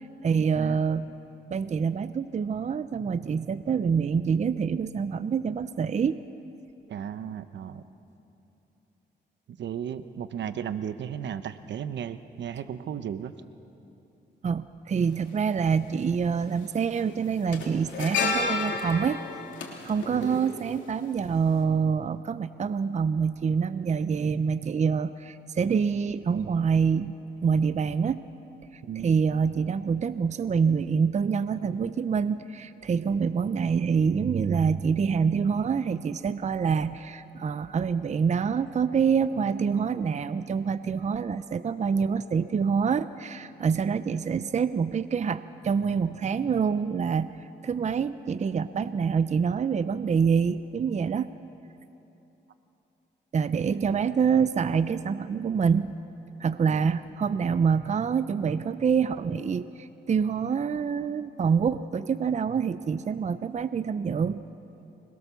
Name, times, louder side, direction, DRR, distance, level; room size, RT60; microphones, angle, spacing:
voice 1, 0.2-1.1 1.5-6.2 14.4-19.2 19.8-28.2 28.7-47.3 47.6-51.3 53.3-56.0 56.4-64.4, right 6 dB, 40° right, 13 dB, 0.6 m, -26 dB
voice 2, 6.9-7.8 9.6-13.3 20.1-20.4 28.8-29.1 56.7-56.9, right 9 dB, 75° right, 11 dB, 0.9 m, -35 dB
sound 1, 15.0-15.1 16.3-16.6 16.9-21.2 21.4-21.6, left 4 dB, 85° left, 3.0 m, -31 dB
24.5 x 21.5 x 7.0 m, 2.9 s
cardioid pair, 85°, 19 cm